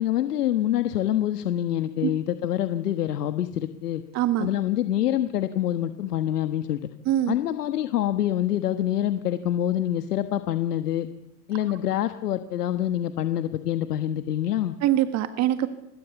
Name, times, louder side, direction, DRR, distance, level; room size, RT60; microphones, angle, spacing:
voice 1, 0.0-4.0 4.4-6.9 7.3-11.1 11.5-14.7, left 12 dB, 80° left, 10 dB, 1.5 m, -26 dB
voice 2, 4.1-4.5 7.1-7.4 14.8-15.7, right 12 dB, 35° right, 10 dB, 1.8 m, -23 dB
26.5 x 21.0 x 7.1 m, 0.86 s
hypercardioid pair, 115°, 46 cm